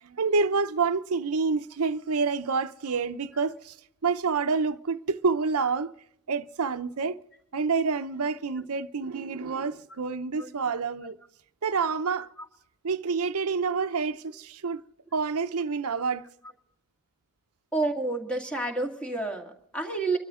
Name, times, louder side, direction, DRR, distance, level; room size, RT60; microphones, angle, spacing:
voice 1, 0.0-3.8 4.0-5.9 6.3-7.2 7.5-11.2 11.6-12.3 12.8-14.8 15.1-16.2, right 4 dB, 90° right, 0.7 m, -28 dB
voice 2, 17.7-20.2, right 2 dB, 5° left, 2.2 m, -29 dB
24.5 x 12.5 x 3.7 m
head